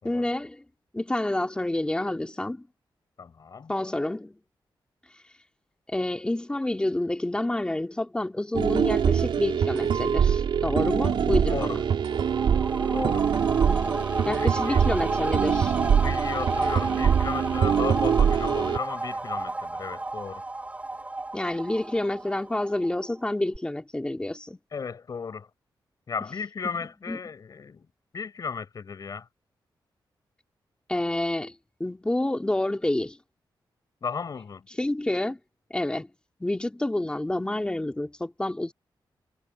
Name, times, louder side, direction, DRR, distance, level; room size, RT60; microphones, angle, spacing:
voice 1, 0.0-0.6 0.9-2.6 3.7-4.4 5.9-11.8 13.7-13.9 14.2-15.8 21.3-24.6 26.6-26.8 27.1-27.2 30.9-31.5 31.8-33.2 34.8-35.4 35.7-36.1 36.4-38.7, left 1 dB, 10° left, 2.8 m, -28 dB
voice 2, 3.2-3.7 11.5-11.8 12.9-13.3 13.9-14.8 15.9-20.4 24.7-25.5 26.1-27.9 28.1-29.3 34.0-34.7, left 5 dB, 45° left, 5.3 m, -35 dB
sound 1, 8.5-18.8, right 7 dB, 90° right, 3.7 m, -24 dB
sound 2, 11.8-23.2 23.5-23.6, right 2 dB, 15° right, 2.6 m, -32 dB
wide cardioid pair, 160°, 8 cm